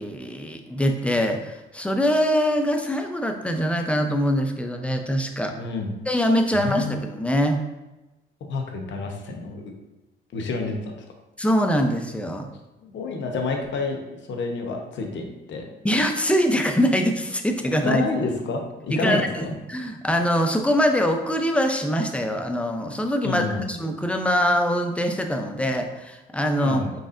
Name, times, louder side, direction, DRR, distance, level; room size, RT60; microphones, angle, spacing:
voice 1, 0.0-5.5 6.1-7.6 11.4-12.5 15.8-18.0 18.9-23.4 23.7-26.8, equal, 5° left, 4 dB, 0.5 m, -23 dB
voice 2, 5.6-5.9 6.5-7.0 8.4-9.7 10.3-10.9 12.8-14.0 14.3-15.7 17.8-19.5 23.2-23.8 26.6-26.9, left 3 dB, 65° left, 2 dB, 0.9 m, -29 dB
4.6 x 4.1 x 2.5 m, 1.0 s
cardioid pair, 90°, 20 cm